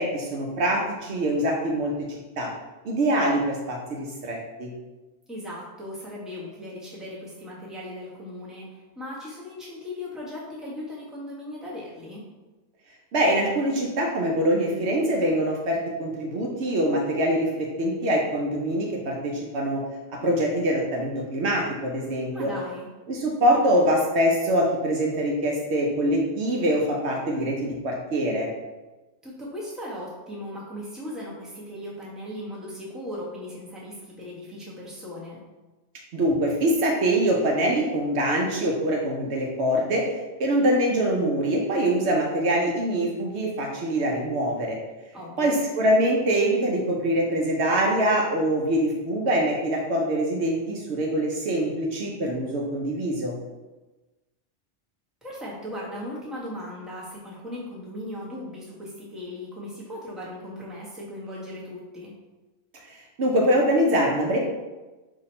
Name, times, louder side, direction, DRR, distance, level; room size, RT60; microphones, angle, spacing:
voice 1, 0.0-2.5 2.8-4.7 13.1-19.8 20.2-22.5 23.1-28.5 36.1-40.1 40.4-44.8 45.4-53.4 62.9-64.4, right 1 dB, 70° right, 0 dB, 0.9 m, -24 dB
voice 2, 5.3-12.3 22.3-22.9 29.2-35.4 45.1-45.6 55.2-62.1, left 1 dB, ahead, -6 dB, 0.9 m, -37 dB
4.0 x 2.8 x 4.2 m, 1.1 s
omnidirectional pair, 1.2 m